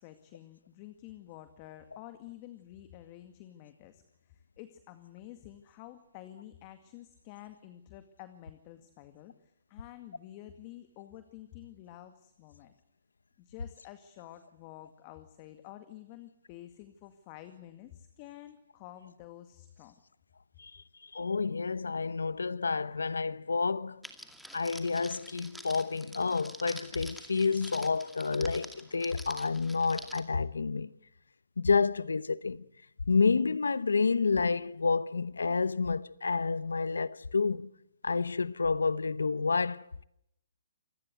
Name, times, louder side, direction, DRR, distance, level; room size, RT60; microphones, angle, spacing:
voice 1, 0.0-9.3 9.7-12.7 13.4-19.9, left 13 dB, 35° left, 2.1 m, -50 dB
voice 2, 20.6-24.0 24.5-30.9 31.6-32.6 33.1-37.7 38.0-40.0, left 4 dB, 90° left, 1.0 m, -29 dB
Crackle, 24.0-30.2, equal, ahead, 2.3 m, -47 dB
27.0 x 20.5 x 8.0 m
hypercardioid pair, 140°, 0 cm